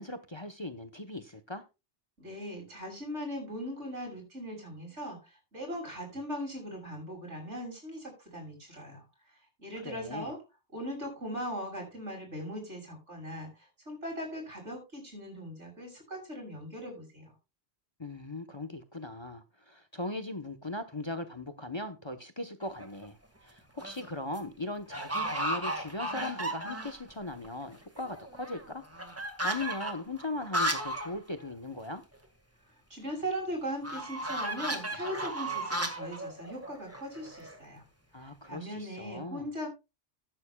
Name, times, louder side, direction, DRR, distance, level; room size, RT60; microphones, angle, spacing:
voice 1, 0.0-1.6 9.8-10.3 18.0-28.8 29.1-32.0 38.1-39.5, left 2 dB, 25° left, 1.0 m, -39 dB
voice 2, 2.2-9.0 9.6-10.4 10.7-17.3 32.9-37.8 38.2-39.7, equal, 85° right, 7.1 m, -39 dB
sound 1, 22.6-23.1 23.6-24.1 24.3-24.4 24.9-27.1 27.4-27.5 27.7-31.1 31.4-31.5 31.8-31.9 33.8-37.6, right 1 dB, 10° right, 1.7 m, -34 dB
15.0 x 12.0 x 2.3 m
omnidirectional pair, 1.2 m